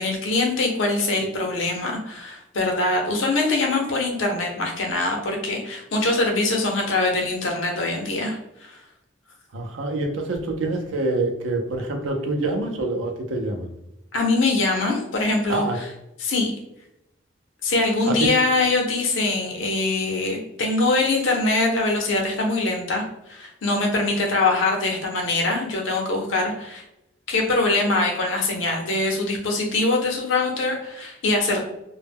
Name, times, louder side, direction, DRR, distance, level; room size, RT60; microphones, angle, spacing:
voice 1, 0.0-8.8 14.1-15.9 16.2-16.5 17.6-26.8 27.3-31.6, left 2 dB, 80° left, 1 dB, 0.6 m, -23 dB
voice 2, 9.5-13.7 15.5-15.8 18.0-18.1, right 2 dB, 80° right, 3 dB, 0.5 m, -26 dB
2.2 x 2.0 x 3.4 m, 0.88 s
head